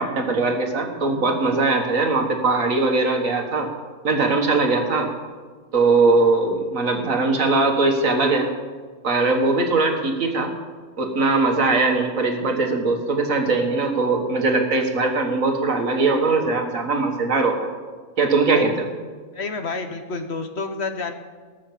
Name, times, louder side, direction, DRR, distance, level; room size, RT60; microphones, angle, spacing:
voice 1, 0.0-3.7 4.0-5.1 5.7-8.5 9.0-10.5 11.0-17.7 18.2-18.9, right 3 dB, 65° right, 3 dB, 2.0 m, -20 dB
voice 2, 19.3-21.1, left 3 dB, 55° left, 6 dB, 1.1 m, -29 dB
19.0 x 6.4 x 7.4 m, 1.5 s
omnidirectional pair, 1.5 m